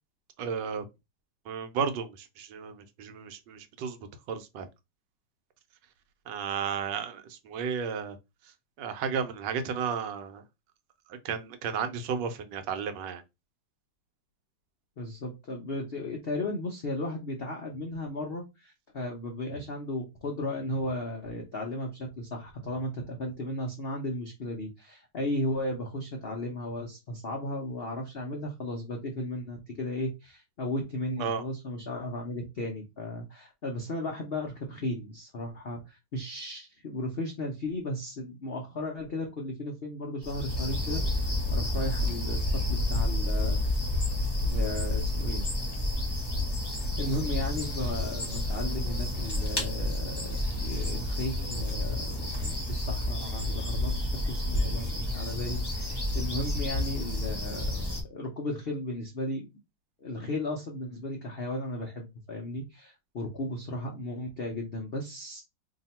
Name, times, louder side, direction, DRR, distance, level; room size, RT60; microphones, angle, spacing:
voice 1, 0.4-0.8 1.5-4.0 4.3-4.7 6.3-8.2 8.8-10.4 11.1-13.2 31.2-31.4, right 6 dB, 75° right, 1.3 m, -33 dB
voice 2, 15.0-43.6 44.4-45.4 46.7-50.3 50.6-57.8 58.1-59.4 60.0-65.4, left 1 dB, 65° left, 0.6 m, -35 dB
sound 1, 40.2-58.0, left 1 dB, 20° left, 0.8 m, -30 dB
2.8 x 2.7 x 4.2 m
omnidirectional pair, 1.9 m